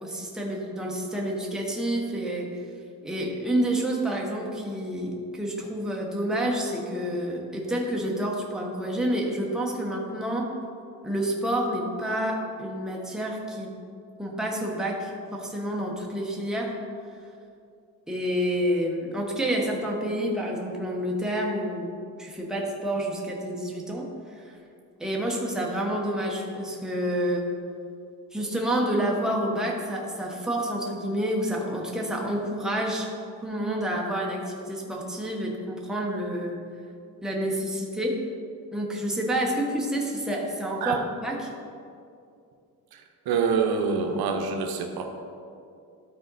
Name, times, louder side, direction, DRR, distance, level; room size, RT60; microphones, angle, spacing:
voice 1, 0.0-2.5 3.0-10.5 11.0-13.7 14.2-16.7 18.1-24.1 24.4-24.6 25.0-27.5 28.3-33.1 33.4-36.6 37.2-38.2 38.7-41.5, right 1 dB, ahead, -2 dB, 1.0 m, -29 dB
voice 2, 42.9-45.1, right 5 dB, 75° right, 4 dB, 0.9 m, -26 dB
12.5 x 4.2 x 4.0 m, 2.5 s
cardioid pair, 150°, 37 cm